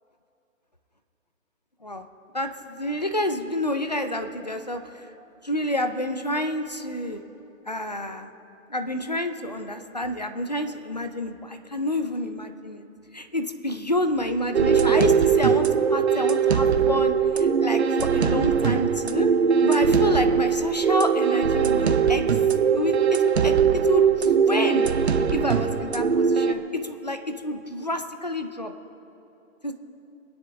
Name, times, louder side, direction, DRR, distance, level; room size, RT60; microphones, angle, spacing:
voice 1, 2.3-5.1 5.4-7.2 7.7-8.3 8.7-12.9 13.1-19.3 19.6-22.3 22.7-24.9 25.3-28.7 29.6-29.7, left 1 dB, 30° left, 7 dB, 0.5 m, -28 dB
sound 1, 14.5-26.5, right 6 dB, 50° right, 0.8 m, -21 dB
26.0 x 10.0 x 3.4 m, 2.9 s
hypercardioid pair, 175°, 42 cm